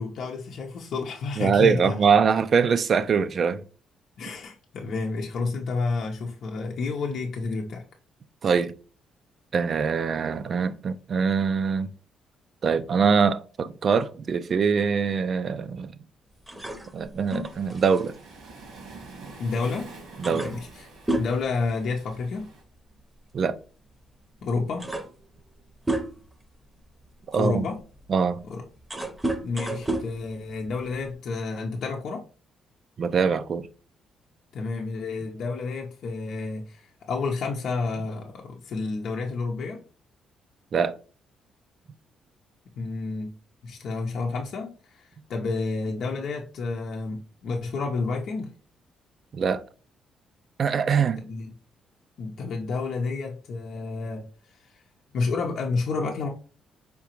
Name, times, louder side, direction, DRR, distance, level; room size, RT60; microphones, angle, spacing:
voice 1, 0.0-2.0 4.2-7.8 19.4-19.9 20.3-20.9 21.2-22.5 24.4-24.9 27.3-27.8 28.5-28.6 29.4-32.3 34.5-39.8 42.8-43.3 43.6-48.5 51.3-51.5 52.2-54.3 54.6-54.8 55.1-56.3, left 4 dB, 65° left, 0.7 m, -30 dB
voice 2, 1.4-3.6 8.4-8.7 9.5-11.9 12.6-15.9 16.9-18.2 20.2-20.4 23.3-23.6 27.3-27.6 28.1-28.4 33.0-33.7 40.7-41.0 49.3-49.6 50.6-51.2, right 6 dB, 50° right, 0.4 m, -23 dB
sound 1, 16.5-19.5 19.8-19.9 20.2-22.4 22.7-22.9 23.9-24.0 24.5-26.4 27.0-31.1, right 1 dB, 15° right, 0.8 m, -33 dB
Waves surf, 17.5-22.6, right 3 dB, 90° right, 1.6 m, -46 dB
4.9 x 3.6 x 2.9 m
cardioid pair, 90°, 0 cm